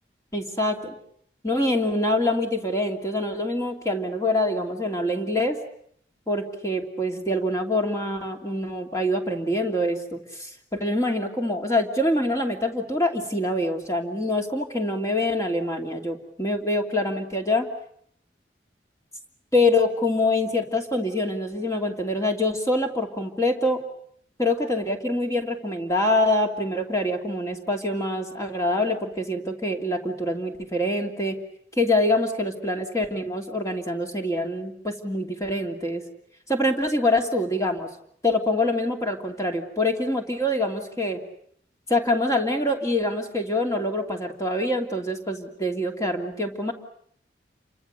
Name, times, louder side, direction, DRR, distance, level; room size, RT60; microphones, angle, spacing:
voice 1, 0.3-0.7 1.4-5.6 6.3-17.7 19.5-23.8 24.4-31.4 31.8-36.0 36.5-37.9 38.2-41.2 41.9-46.7, left 1 dB, 15° left, 2 dB, 2.8 m, -25 dB
29.0 x 25.0 x 6.7 m, 0.67 s
head